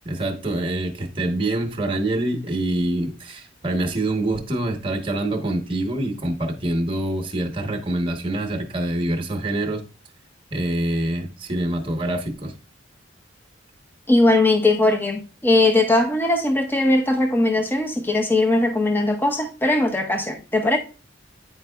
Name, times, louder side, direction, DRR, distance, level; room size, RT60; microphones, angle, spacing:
voice 1, 0.0-9.8 10.5-12.6, right 1 dB, 25° right, 0.9 m, -25 dB
voice 2, 14.1-20.8, left 2 dB, 10° left, 0.5 m, -19 dB
9.3 x 4.5 x 2.3 m
head